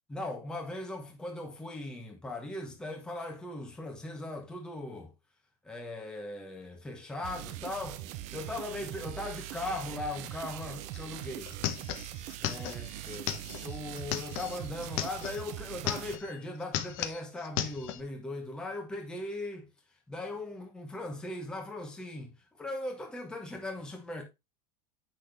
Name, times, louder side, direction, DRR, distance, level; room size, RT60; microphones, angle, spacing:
voice 1, 0.1-5.1 5.6-8.0 8.3-11.5 12.4-19.7 20.1-24.2, left 2 dB, 5° left, 1.0 m, -39 dB
sound 1, 7.2-16.2, right 14 dB, 35° right, 0.6 m, -42 dB
sound 2, 10.9-11.0 11.2-15.4 15.7-16.3 16.6-18.0, left 12 dB, 45° left, 0.9 m, -36 dB
8.5 x 6.1 x 3.3 m
supercardioid pair, 175°, 20 cm